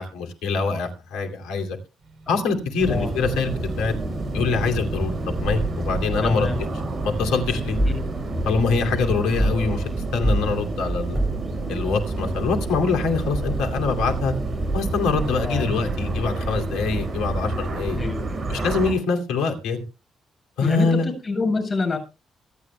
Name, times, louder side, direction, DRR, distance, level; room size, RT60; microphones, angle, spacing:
voice 1, 0.0-1.8 2.3-3.9 4.3-5.1 5.4-6.5 7.0-7.8 8.5-9.8 10.1-11.2 11.7-14.3 14.7-18.0 18.5-19.8 20.6-21.1, left 4 dB, 80° left, 5 dB, 2.6 m, -24 dB
sound 1, 2.0-8.4, right 2 dB, 65° right, 4.7 m, -39 dB
sound 2, 2.8-18.9, right 2 dB, 45° right, 6.2 m, -28 dB
voice 2, 6.2-6.6 7.9-8.0 15.4-15.7 17.9-18.4 20.6-22.0, left 3 dB, 45° left, 5 dB, 7.8 m, -26 dB
sound 3, 7.8-8.1 9.4-9.7 10.2-10.5 11.1-11.5, equal, 20° right, 4.9 m, -22 dB
25.0 x 9.3 x 2.2 m, 0.30 s
hypercardioid pair, 45°, 0 cm